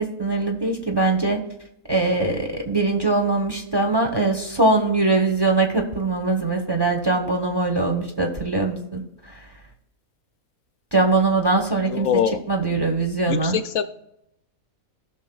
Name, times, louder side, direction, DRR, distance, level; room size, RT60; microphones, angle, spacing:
voice 1, 0.0-1.4 1.9-9.4 10.9-12.1 12.5-13.6, right 3 dB, 20° right, 2 dB, 1.1 m, -22 dB
voice 2, 11.9-12.4 13.3-13.8, left 8 dB, 70° left, 10 dB, 1.0 m, -23 dB
18.0 x 6.2 x 2.3 m, 0.82 s
omnidirectional pair, 1.5 m